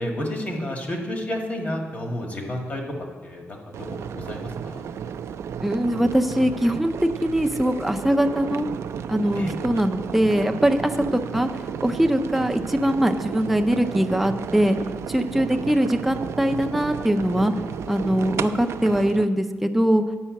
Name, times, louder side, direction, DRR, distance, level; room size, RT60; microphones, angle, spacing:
voice 1, 0.0-2.9 3.2-4.8 9.3-9.5, left 1 dB, 35° left, 1 dB, 1.7 m, -31 dB
sound 1, 3.7-19.2, right 7 dB, 75° right, 0.4 m, -33 dB
voice 2, 5.6-8.7 9.1-11.5 11.8-14.8 15.1-17.5 17.9-20.0, equal, 5° right, 4 dB, 0.5 m, -22 dB
10.0 x 5.6 x 7.5 m, 1.5 s
wide cardioid pair, 165°, 5 cm